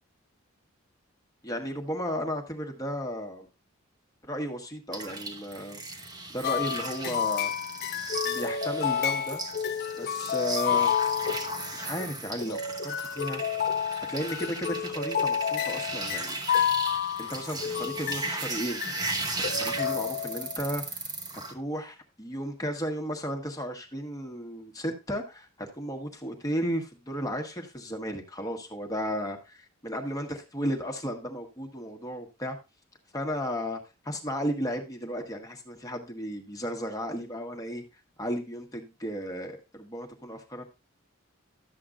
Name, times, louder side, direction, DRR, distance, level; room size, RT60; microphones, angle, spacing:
voice 1, 1.4-3.5 4.2-5.8 6.3-7.5 8.2-9.4 10.0-11.0 11.7-13.4 14.1-16.4 17.2-18.8 19.4-32.6 33.1-37.8 38.2-40.6, equal, 15° left, 3 dB, 1.3 m, -34 dB
sound 1, 4.9-21.5, right 3 dB, 20° right, 1.1 m, -37 dB
sound 2, 6.4-12.1 12.4-18.4 18.8-19.2 19.4-20.6, left 8 dB, 50° left, 0.4 m, -30 dB
12.5 x 7.7 x 2.4 m, 0.27 s
head